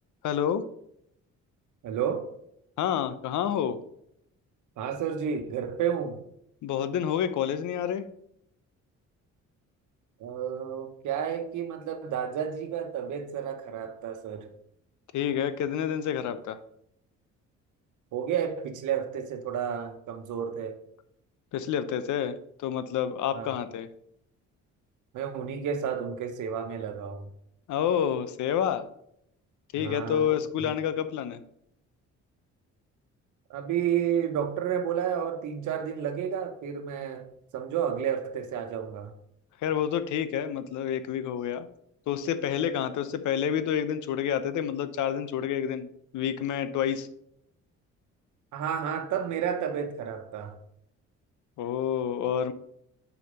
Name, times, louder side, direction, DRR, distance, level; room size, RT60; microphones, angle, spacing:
voice 1, 0.2-0.6 2.8-3.8 6.6-8.0 15.1-16.6 21.5-23.9 27.7-28.8 29.7-31.4 39.6-41.7 42.1-45.9 46.1-47.1 51.6-52.5, left 9 dB, 75° left, 0.8 m, -28 dB
voice 2, 1.8-2.2 4.8-6.2 10.2-14.5 18.1-20.8 23.3-23.5 25.1-27.3 29.8-30.3 30.6-30.7 33.5-39.1 48.5-50.6, right 8 dB, 80° right, 1.1 m, -31 dB
6.7 x 5.0 x 5.1 m
cardioid pair, 90°, 30 cm